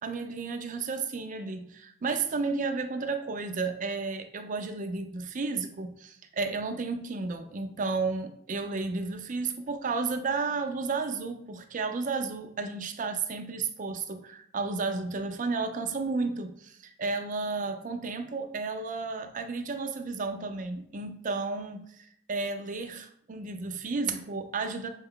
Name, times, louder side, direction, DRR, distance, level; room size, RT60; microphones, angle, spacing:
voice 1, 0.0-24.9, right 4 dB, 45° right, 0.5 m, -32 dB
6.1 x 2.3 x 3.6 m
head